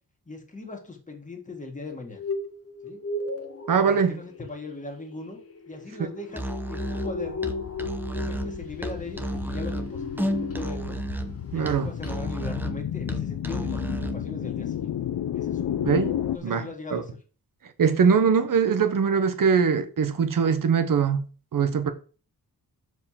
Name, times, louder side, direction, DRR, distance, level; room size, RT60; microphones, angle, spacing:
voice 1, 0.3-2.2 2.8-3.0 3.8-5.4 5.7-7.5 8.2-11.0 11.5-14.9 15.3-15.8 16.3-17.1, left 3 dB, 20° left, 1.8 m, -39 dB
sound 1, 1.9-11.2 11.5-11.8 12.0-12.1, left 3 dB, 40° left, 1.2 m, -36 dB
voice 2, 3.7-4.1 11.5-11.9 15.8-16.2 16.4-17.0 17.8-21.3 21.5-21.9, right 6 dB, 60° right, 1.1 m, -22 dB
Musical instrument, 6.3-14.3, right 1 dB, 5° right, 0.7 m, -32 dB
sound 2, 7.0-16.4, left 10 dB, 90° left, 0.7 m, -33 dB
6.7 x 4.9 x 5.7 m
wide cardioid pair, 175°, 37 cm